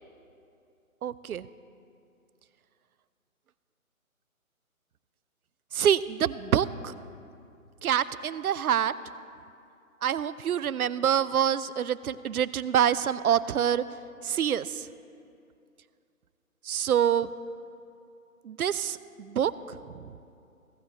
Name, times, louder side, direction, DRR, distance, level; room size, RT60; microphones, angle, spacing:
voice 1, 1.0-1.5 5.7-6.9 7.8-8.9 10.0-13.8 14.2-14.9 16.7-17.3 18.4-19.5, right 9 dB, 85° right, 17 dB, 0.6 m, -26 dB
16.5 x 12.5 x 3.0 m, 2.5 s
hypercardioid pair, 175°, 42 cm